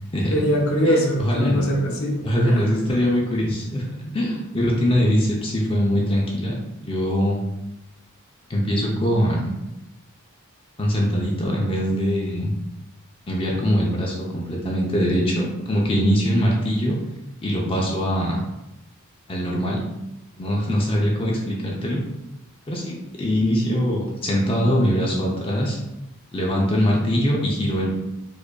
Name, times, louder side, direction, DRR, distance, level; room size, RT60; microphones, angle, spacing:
voice 1, 0.3-2.2 2.5-2.8, equal, 70° left, -1 dB, 0.8 m, -22 dB
voice 2, 0.8-1.7 2.2-6.5 6.8-7.4 8.5-9.5 10.8-12.5 13.3-17.0 17.4-18.4 19.3-19.9 20.4-22.0 22.7-25.8 26.3-27.9, equal, 25° left, -2 dB, 0.5 m, -22 dB
4.8 x 2.6 x 2.2 m, 0.93 s
head